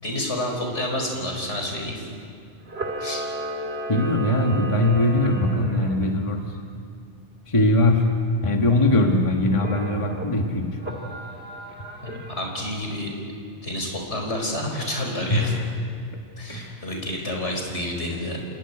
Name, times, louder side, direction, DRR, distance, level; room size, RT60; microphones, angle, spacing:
voice 1, 0.0-2.1 3.0-3.3 12.0-13.1 13.6-15.5 16.4-18.5, left 1 dB, 75° left, 1 dB, 5.2 m, -29 dB
Camera, 2.6-6.0 9.5-10.3 10.8-12.6, right 2 dB, 60° right, 2.8 m, -34 dB
voice 2, 3.9-6.5 7.5-8.0 8.4-10.8 15.3-15.6 16.5-16.8, left 1 dB, 25° left, 2 dB, 1.7 m, -21 dB
26.5 x 15.0 x 9.9 m, 2.3 s
omnidirectional pair, 1.2 m